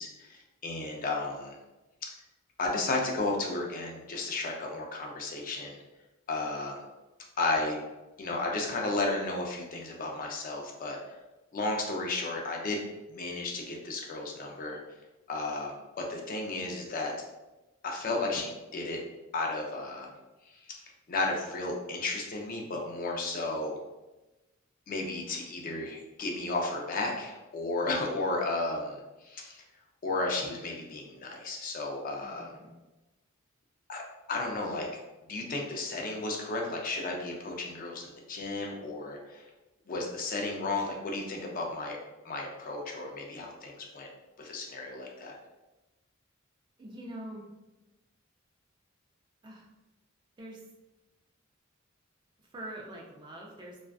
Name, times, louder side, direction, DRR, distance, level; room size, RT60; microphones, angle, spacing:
voice 1, 0.0-1.6 2.0-2.1 2.6-5.8 6.3-6.8 7.4-7.8 8.2-11.2 11.5-12.8 13.1-14.8 15.3-17.1 17.8-19.0 19.3-20.1 20.5-20.8 21.1-23.8 24.9-29.6 30.0-32.5 33.9-34.0 34.3-34.9 35.3-39.5 39.9-42.0 42.2-44.1 44.4-45.4, left 2 dB, 40° left, 0 dB, 0.4 m, -33 dB
voice 2, 32.2-32.8 46.8-47.5 49.4-49.7 50.4-50.7 52.4-53.8, right 1 dB, 20° right, -1 dB, 0.3 m, -44 dB
2.4 x 2.3 x 2.3 m, 1.1 s
head